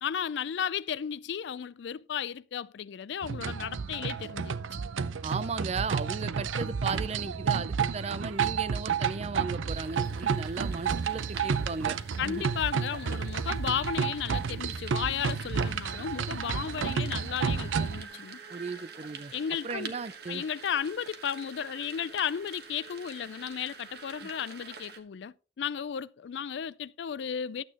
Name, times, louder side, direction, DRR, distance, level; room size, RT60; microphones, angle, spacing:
voice 1, 0.0-4.8 12.2-18.4 19.3-19.9 20.3-27.6, left 8 dB, 65° left, 0.4 m, -34 dB
sound 1, 3.2-18.0, right 6 dB, 90° right, 0.5 m, -31 dB
voice 2, 5.2-12.5 18.5-19.3 19.6-20.4 24.2-24.3, right 4 dB, 35° right, 0.4 m, -36 dB
sound 2, 9.7-25.0, right 5 dB, 55° right, 1.2 m, -46 dB
12.0 x 8.3 x 2.9 m
head